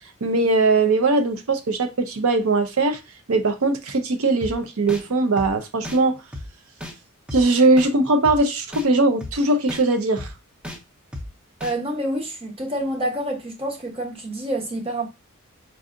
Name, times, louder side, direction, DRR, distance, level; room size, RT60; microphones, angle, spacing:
voice 1, 0.2-3.0 3.3-6.2 7.3-10.3, right 2 dB, 80° right, 0.6 m, -20 dB
sound 1, 4.4-4.5 4.9-5.0 5.4-5.5 5.8-6.0 6.3-6.5 6.8-6.9 7.3-7.4 7.8-7.9 8.2-8.4 8.7-8.9 9.2-9.3 9.7-9.8 10.2-10.3 10.6-10.8 11.1-11.3 11.6-11.7, left 1 dB, 5° right, 0.5 m, -33 dB
voice 2, 11.6-15.1, right 1 dB, 25° right, 0.9 m, -27 dB
4.6 x 2.7 x 2.5 m
head